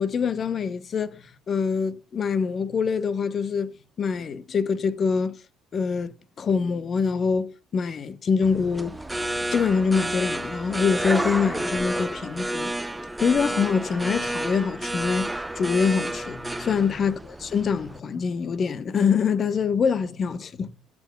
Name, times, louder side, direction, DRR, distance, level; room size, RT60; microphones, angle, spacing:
voice 1, 0.0-5.4 5.7-9.0 9.5-12.7 13.2-17.1 17.4-20.7, left 5 dB, 45° left, 1.0 m, -25 dB
sound 1, 8.4-18.0, right 1 dB, 10° right, 0.6 m, -30 dB
17.0 x 7.2 x 2.3 m
hypercardioid pair, 60°, 0 cm